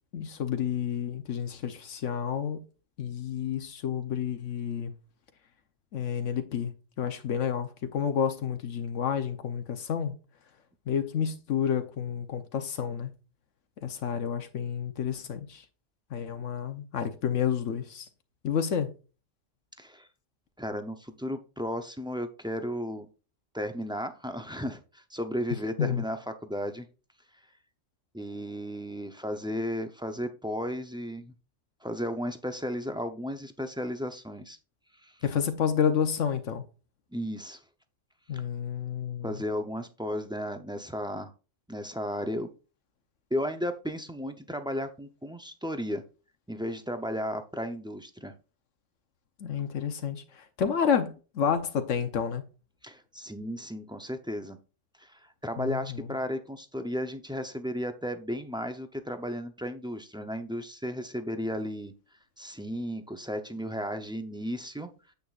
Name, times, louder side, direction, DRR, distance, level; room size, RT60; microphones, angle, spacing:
voice 1, 0.1-2.6 3.0-4.9 5.9-6.7 7.0-10.1 10.9-13.1 13.8-15.6 16.1-18.1 18.4-18.9 25.8-26.0 35.2-36.6 38.3-39.3 49.4-52.4 55.6-56.1, left 8 dB, 80° left, 1.2 m, -30 dB
voice 2, 19.8-20.1 20.6-23.1 23.5-26.9 28.1-31.3 31.8-34.6 35.0-35.1 37.1-37.6 38.3-38.4 39.2-41.3 41.7-42.5 43.3-46.0 46.5-48.3 52.8-54.6 55.0-61.9 62.4-64.9, equal, 5° right, 0.4 m, -34 dB
9.1 x 8.2 x 2.4 m
omnidirectional pair, 1.3 m